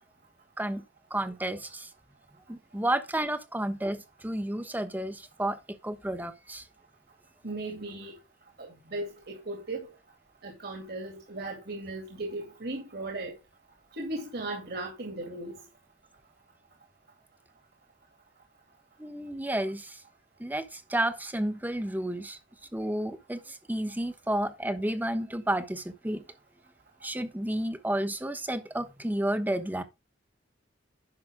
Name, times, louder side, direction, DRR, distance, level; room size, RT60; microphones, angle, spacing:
voice 1, 1.1-1.9 2.5-5.6 5.8-6.6 19.0-20.0 20.4-22.4 22.7-26.2 27.0-29.8, right 1 dB, 10° right, 1.1 m, -31 dB
voice 2, 7.4-8.2 8.6-9.9 10.4-13.4 13.9-15.6, right 2 dB, 60° right, 2.4 m, -37 dB
11.0 x 5.9 x 3.6 m
head